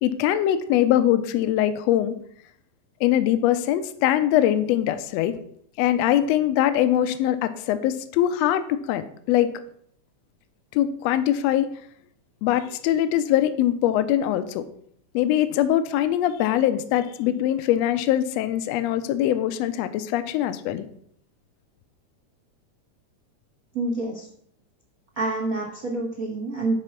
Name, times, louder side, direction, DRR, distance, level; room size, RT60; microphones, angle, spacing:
voice 1, 0.0-2.1 3.0-5.4 5.8-9.6 10.7-11.7 12.4-14.6 15.1-20.8, left 12 dB, 80° left, 11 dB, 1.6 m, -22 dB
voice 2, 23.7-24.3 25.2-26.8, right 2 dB, 75° right, -1 dB, 0.8 m, -27 dB
9.8 x 4.1 x 5.7 m, 0.66 s
omnidirectional pair, 3.4 m